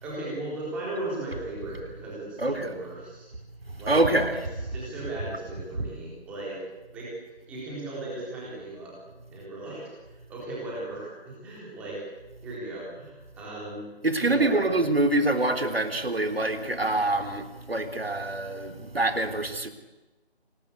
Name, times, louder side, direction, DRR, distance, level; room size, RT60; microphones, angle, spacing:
voice 1, 0.0-3.3 3.8-4.0 4.7-6.6 6.9-7.1 7.5-8.9 9.3-12.0 12.4-13.9 14.1-14.7, right 2 dB, 5° right, -5 dB, 3.9 m, -37 dB
voice 2, 2.4-2.7 3.7-4.4 14.0-19.7, right 2 dB, 65° right, 7 dB, 3.7 m, -25 dB
26.5 x 19.0 x 8.4 m, 1.1 s
figure-of-eight pair, 165°, 32 cm